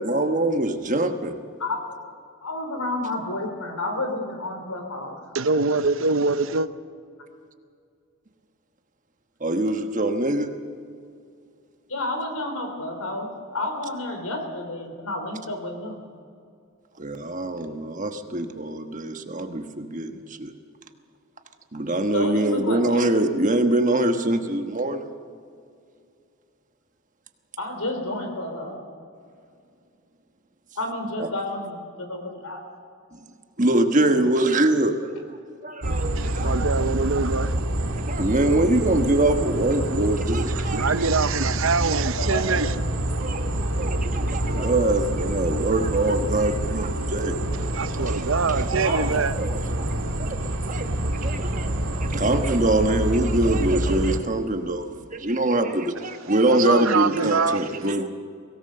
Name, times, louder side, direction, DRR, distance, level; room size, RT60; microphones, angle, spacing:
voice 1, 0.0-1.3 9.4-10.5 17.0-20.5 21.7-25.1 31.2-31.3 33.1-33.2 33.6-35.1 35.6-36.7 38.0-41.1 43.2-47.4 48.0-48.2 48.8-49.0 49.4-50.4 50.7-50.9 51.2-51.7 52.0-58.1, right 1 dB, 35° right, 1.3 m, -24 dB
voice 2, 1.6-2.0 2.4-5.2 11.9-16.0 22.1-23.0 27.6-28.8 30.8-32.6 34.1-34.2 42.1-42.7 48.8-49.4, left 2 dB, 85° left, 4.0 m, -31 dB
voice 3, 5.3-6.7 36.2-37.5 40.6-42.7 47.7-49.3 56.5-57.9, right 4 dB, 65° right, 0.8 m, -24 dB
sound 1, 35.8-54.2, right 1 dB, 85° right, 2.1 m, -27 dB
23.0 x 18.0 x 6.7 m
head